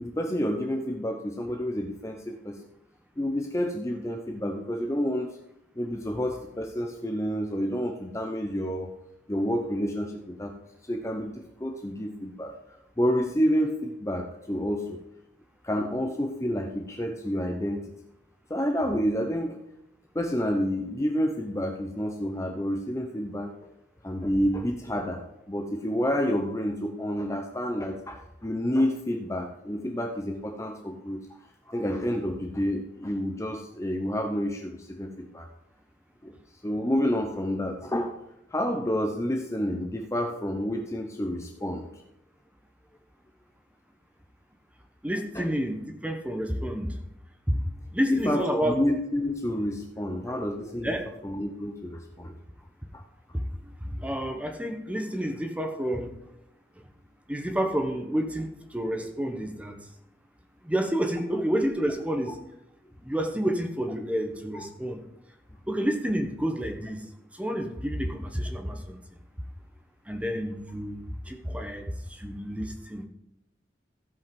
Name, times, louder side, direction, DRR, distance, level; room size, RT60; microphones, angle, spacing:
voice 1, 0.0-2.5 3.2-5.4 5.8-8.9 9.3-10.5 10.8-12.5 13.0-15.0 15.6-17.9 18.5-19.6 20.1-23.5 24.0-31.2 31.7-35.5 36.2-36.3 36.6-38.1 38.5-41.9 45.3-45.5 48.1-51.0 51.2-52.3 52.9-53.0 64.5-64.6, equal, 15° left, 3 dB, 0.7 m, -29 dB
voice 2, 45.0-47.0 47.5-47.6 47.9-48.8 50.3-50.5 50.8-51.1 53.6-56.1 57.3-59.8 60.6-62.4 63.0-65.0 65.7-67.0 67.3-69.0 70.1-73.1, equal, 5° right, 4 dB, 1.1 m, -29 dB
15.5 x 5.3 x 5.4 m, 0.84 s
head